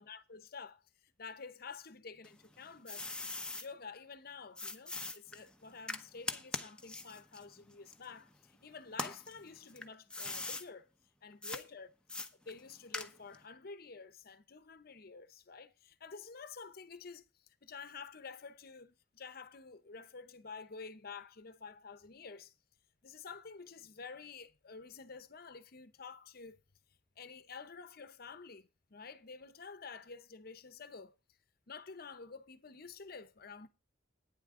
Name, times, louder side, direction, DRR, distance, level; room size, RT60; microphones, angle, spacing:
voice 1, 0.0-3.0 3.5-10.9 11.2-11.9 12.4-22.5 23.0-26.6 27.2-31.2 31.7-33.7, left 5 dB, 55° left, 0.8 m, -50 dB
sound 1, 2.2-3.7 4.6-8.5 8.9-10.7 11.4-11.6 12.1-13.4, left 2 dB, 5° left, 0.9 m, -42 dB
11.0 x 9.6 x 3.7 m
head